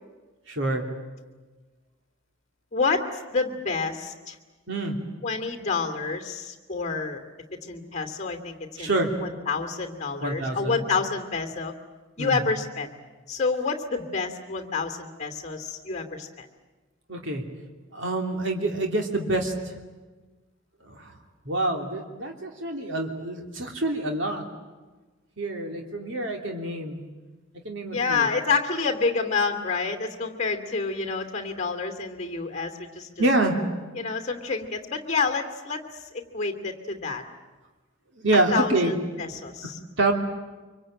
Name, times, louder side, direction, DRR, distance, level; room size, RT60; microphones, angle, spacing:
voice 1, 0.5-0.8 4.7-5.0 8.8-9.1 10.2-10.8 12.2-12.4 17.1-17.4 17.9-19.8 20.8-21.1 21.4-24.4 25.4-27.0 27.6-28.3 33.2-33.5 38.2-39.0 40.0-40.1, right 2 dB, 65° right, 3 dB, 3.0 m, -26 dB
voice 2, 2.7-4.4 5.2-7.2 7.6-11.7 12.2-12.9 13.3-16.5 27.9-33.2 34.0-37.2 38.5-39.8, left 4 dB, 35° left, 6 dB, 2.7 m, -28 dB
25.0 x 24.5 x 9.0 m, 1.3 s
head